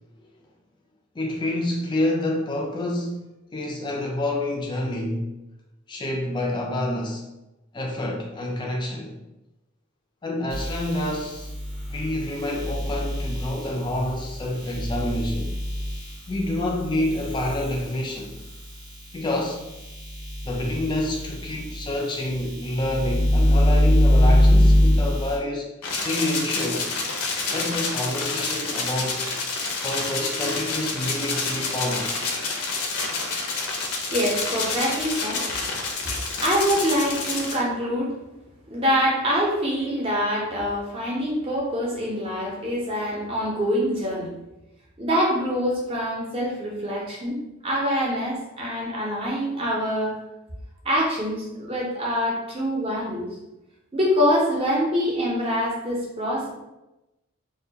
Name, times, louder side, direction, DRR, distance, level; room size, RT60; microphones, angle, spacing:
voice 1, 1.1-5.3 5.9-7.3 7.7-9.2 10.2-11.5 11.9-15.5 16.3-18.3 19.1-19.6 20.4-25.7 26.0-26.9 27.5-29.2 29.8-32.1, left 1 dB, 20° left, 0 dB, 0.3 m, -28 dB
sound 1, 10.5-18.8 19.3-25.4, left 1 dB, 80° right, 0.7 m, -23 dB
sound 2, 25.8-37.6, left 3 dB, 85° left, 0.5 m, -28 dB
voice 2, 34.1-35.5 36.1-38.1 38.7-44.3 45.0-50.2 50.8-53.3 53.9-56.5, equal, 25° right, -4 dB, 0.6 m, -25 dB
2.2 x 2.1 x 2.7 m, 0.96 s
head